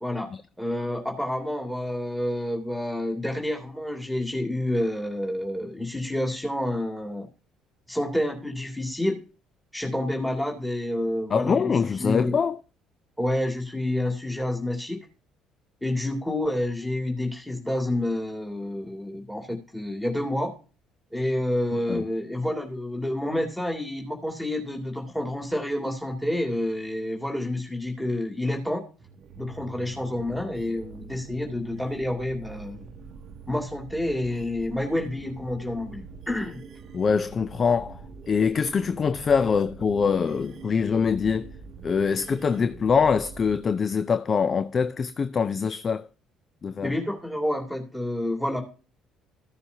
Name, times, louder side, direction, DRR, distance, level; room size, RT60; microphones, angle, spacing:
voice 1, 0.6-7.3 7.9-9.2 9.7-11.7 12.0-12.4 13.2-15.0 15.8-20.5 21.1-28.8 29.4-32.8 33.5-36.6 46.8-48.6, left 1 dB, 5° left, 2.3 m, -29 dB
voice 2, 11.3-12.6 21.7-22.0 36.9-38.0 38.3-41.5 41.8-46.1 46.6-46.9, left 6 dB, 40° left, 0.4 m, -24 dB
sound 1, 29.0-43.6, right 4 dB, 55° right, 0.8 m, -44 dB
14.5 x 7.0 x 2.8 m
figure-of-eight pair, 50°, 0 cm